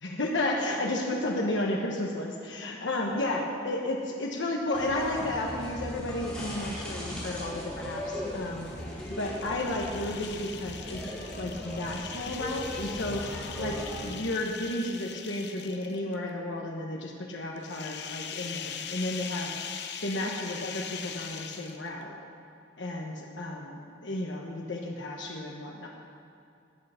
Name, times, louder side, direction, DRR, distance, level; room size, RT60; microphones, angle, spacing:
voice 1, 0.0-8.7 9.2-11.0 11.3-19.5 20.0-22.1 22.8-25.9, left 1 dB, 85° left, -1 dB, 1.2 m, -32 dB
sound 1, 4.7-14.1, left 1 dB, 5° left, 3.9 m, -38 dB
sound 2, 8.4-16.1 17.6-22.0, left 8 dB, 65° left, 0.8 m, -41 dB
20.0 x 6.7 x 5.8 m, 2.5 s
head